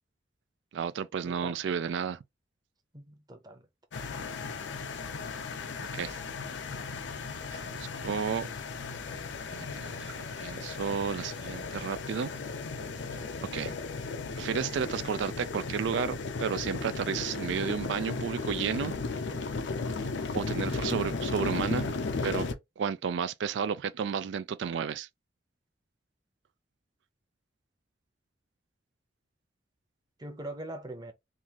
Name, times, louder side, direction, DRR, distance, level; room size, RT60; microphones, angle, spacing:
voice 1, 0.7-2.2 5.9-6.2 7.5-8.5 9.5-12.3 13.5-13.7 14.4-18.9 20.3-21.9 22.2-22.5 22.8-25.1, right 7 dB, 85° right, 0.3 m, -32 dB
voice 2, 1.2-1.6 2.9-3.7 30.2-31.1, right 1 dB, 25° right, 0.8 m, -42 dB
sound 1, 3.9-22.5, left 4 dB, 85° left, 0.6 m, -35 dB
3.7 x 2.5 x 2.9 m
head